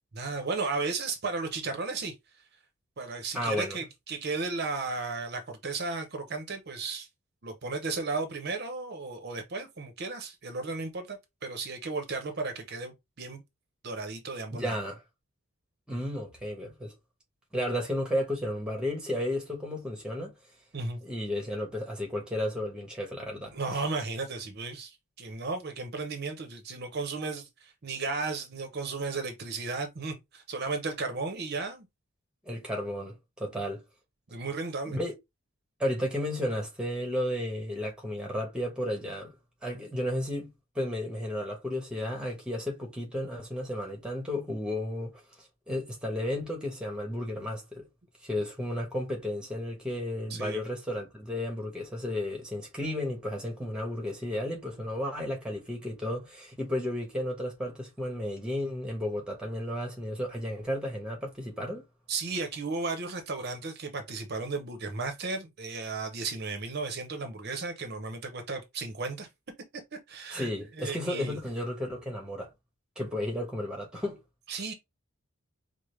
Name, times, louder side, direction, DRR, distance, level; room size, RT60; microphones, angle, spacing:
voice 1, 0.1-2.1 3.0-7.1 7.4-13.4 13.8-14.8 20.7-21.0 23.5-31.9 34.3-35.0 50.3-50.6 62.1-69.3 70.1-70.5 70.8-71.4 74.5-74.7, right 3 dB, 50° right, 0.6 m, -34 dB
voice 2, 3.3-3.8 14.5-15.0 15.9-16.9 17.5-20.3 21.0-23.8 32.4-33.8 34.9-35.1 35.8-39.3 39.6-40.5 40.7-45.1 45.4-47.9 48.2-61.8 70.3-72.5 73.0-74.2, left 1 dB, 5° right, 1.0 m, -33 dB
4.9 x 2.0 x 3.1 m
head